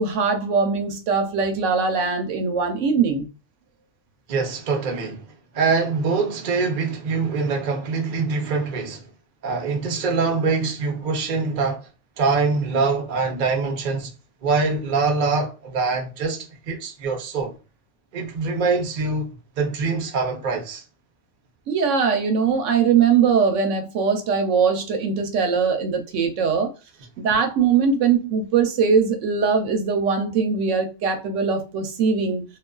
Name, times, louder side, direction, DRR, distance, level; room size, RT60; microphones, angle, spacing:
voice 1, 0.0-3.3 21.7-26.7 27.2-32.4, right 5 dB, 80° right, 0.9 m, -21 dB
voice 2, 4.3-5.3 5.5-9.1 9.4-11.9 12.2-14.1 14.4-17.5 18.1-20.8, right 4 dB, 50° right, 0.6 m, -24 dB
2.3 x 2.3 x 2.2 m
omnidirectional pair, 1.3 m